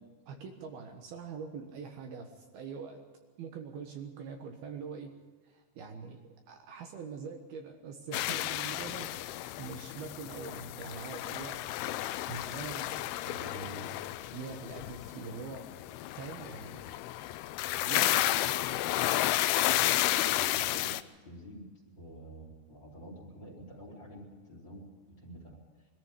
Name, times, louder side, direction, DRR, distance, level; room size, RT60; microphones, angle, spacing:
voice 1, 0.3-3.0 3.4-5.1 5.4-9.3 9.6-11.6 12.3-15.7 16.2-16.8 17.8-18.2, right 5 dB, 65° right, 4 dB, 3.1 m, -43 dB
sound 1, 8.1-21.0, left 15 dB, 80° left, 2.4 m, -32 dB
voice 2, 17.9-18.8 19.5-20.9 21.2-25.6, equal, 25° left, 1 dB, 4.1 m, -48 dB
22.0 x 14.0 x 8.3 m, 1.4 s
omnidirectional pair, 5.1 m